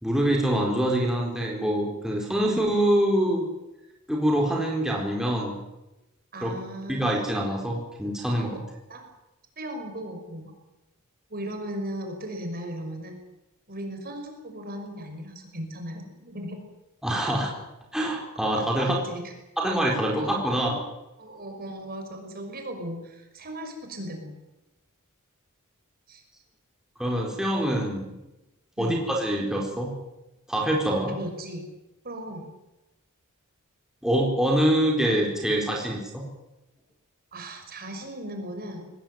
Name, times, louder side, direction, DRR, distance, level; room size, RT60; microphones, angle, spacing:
voice 1, 0.0-3.4 4.1-5.6 6.4-6.5 6.9-8.6 17.0-17.5 17.9-19.0 19.6-20.8 27.0-28.1 28.8-29.9 30.5-31.1 34.0-36.3, right 1 dB, 5° right, -1 dB, 4.3 m, -25 dB
voice 2, 6.3-7.1 8.9-9.0 9.6-10.5 11.3-13.2 13.7-16.6 18.4-19.3 20.2-20.3 21.2-24.3 26.1-26.2 28.8-29.0 31.1-31.7 32.0-32.5 37.3-38.9, right 1 dB, 45° right, 4 dB, 5.8 m, -37 dB
23.0 x 19.5 x 9.3 m, 0.98 s
head